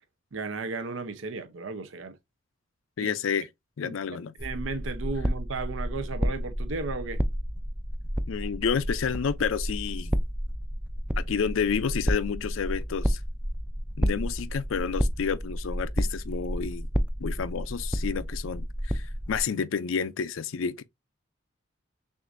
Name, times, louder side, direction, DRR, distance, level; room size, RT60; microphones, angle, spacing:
voice 1, 0.3-2.2 3.0-3.1 3.8-4.0 4.4-7.2, right 3 dB, 75° right, 0.7 m, -34 dB
voice 2, 3.0-3.5 3.8-4.3 8.3-10.1 11.2-13.2 14.0-16.9 17.2-20.8, left 6 dB, 85° left, 0.4 m, -30 dB
sound 1, 4.4-19.4, equal, 5° right, 0.3 m, -31 dB
6.2 x 2.5 x 2.5 m
head